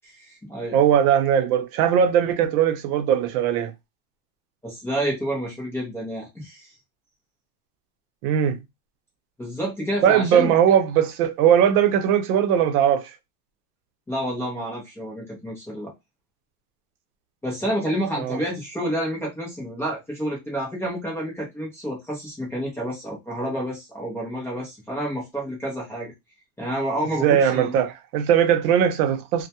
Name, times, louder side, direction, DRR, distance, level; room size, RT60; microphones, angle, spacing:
voice 1, 0.1-0.8 4.6-6.7 9.4-10.5 14.1-15.9 17.4-26.1 26.6-27.7, equal, 5° left, 0.4 m, -29 dB
voice 2, 0.7-3.7 8.2-8.6 10.0-13.1 18.2-18.4 27.2-29.5, right 9 dB, 75° right, 0.7 m, -19 dB
2.2 x 2.1 x 2.8 m
supercardioid pair, 145°, 46 cm